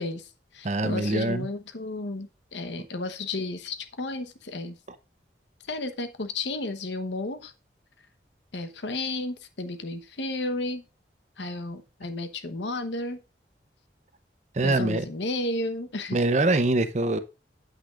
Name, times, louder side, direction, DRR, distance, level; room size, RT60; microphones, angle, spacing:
voice 1, 0.0-4.8 5.7-7.5 8.5-10.8 11.4-13.2 14.6-16.2, left 2 dB, 85° left, 1.1 m, -33 dB
voice 2, 0.6-1.5 14.5-15.0 16.1-17.2, right 2 dB, 40° right, 0.7 m, -24 dB
8.9 x 8.0 x 2.5 m
head